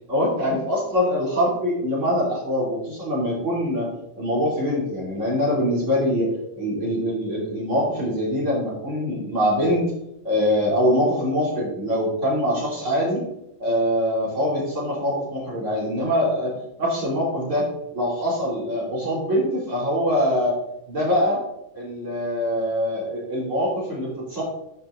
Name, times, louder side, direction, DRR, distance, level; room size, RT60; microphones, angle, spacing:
voice 1, 0.1-3.9 4.2-9.8 10.2-13.2 13.6-17.6 17.9-20.6 20.9-21.4 21.7-24.4, equal, 70° right, -4 dB, 3.3 m, -23 dB
9.8 x 5.0 x 3.8 m, 0.83 s
omnidirectional pair, 1.3 m